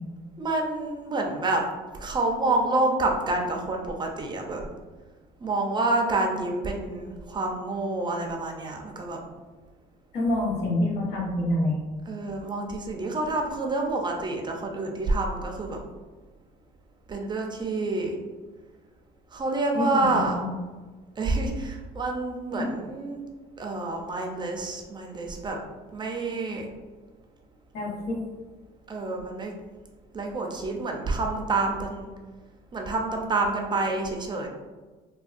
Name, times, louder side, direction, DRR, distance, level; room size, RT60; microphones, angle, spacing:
voice 1, 0.4-1.6 2.0-4.6 5.4-9.2 12.1-15.8 17.1-18.2 19.3-20.4 21.2-23.2 23.6-25.6 25.9-26.7 28.9-29.5 30.1-32.1 32.7-34.5, right 2 dB, 25° right, 1 dB, 0.4 m, -28 dB
voice 2, 10.1-11.8 19.7-20.6 22.6-22.7 27.7-28.2, left 1 dB, 75° left, -3 dB, 0.9 m, -27 dB
3.4 x 2.2 x 2.4 m, 1.3 s
cardioid pair, 110°, 17 cm